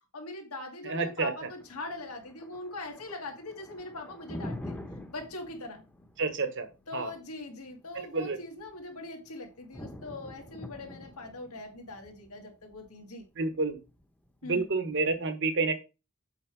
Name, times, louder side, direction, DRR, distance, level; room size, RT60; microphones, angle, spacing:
voice 1, 0.1-4.8 5.1-5.8 6.9-13.2 14.4-14.7, left 2 dB, 85° left, 2.2 m, -41 dB
voice 2, 0.8-1.3 6.2-6.7 6.9-7.1 8.1-8.4 13.4-13.8 14.5-15.7, right 3 dB, 60° right, 1.2 m, -29 dB
Thunder, 0.9-14.9, left 1 dB, 10° left, 0.8 m, -47 dB
7.5 x 4.6 x 4.6 m
head